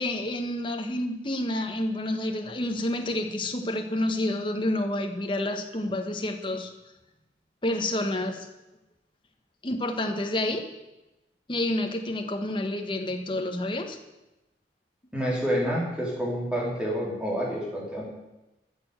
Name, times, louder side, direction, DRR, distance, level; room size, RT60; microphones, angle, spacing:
voice 1, 0.0-6.7 7.6-8.5 9.6-10.6 11.5-14.0, left 1 dB, 25° left, 4 dB, 1.4 m, -29 dB
voice 2, 15.1-18.0, equal, 5° right, -3 dB, 3.5 m, -28 dB
13.5 x 7.1 x 8.1 m, 0.98 s
head